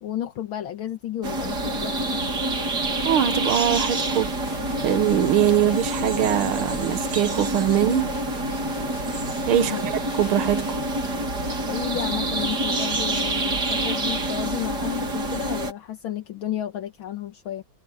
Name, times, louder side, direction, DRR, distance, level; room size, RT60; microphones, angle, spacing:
voice 1, 0.0-2.2 9.6-9.8 11.6-17.6, left 11 dB, 70° left, 1.9 m, -32 dB
sound 1, 1.2-15.7, right 1 dB, 50° right, 3.7 m, -27 dB
voice 2, 3.0-4.3 4.8-8.1 9.5-10.8, right 10 dB, 80° right, 2.0 m, -22 dB
sound 2, 4.5-10.9, left 7 dB, 40° left, 2.2 m, -42 dB
omnidirectional pair, 2.3 m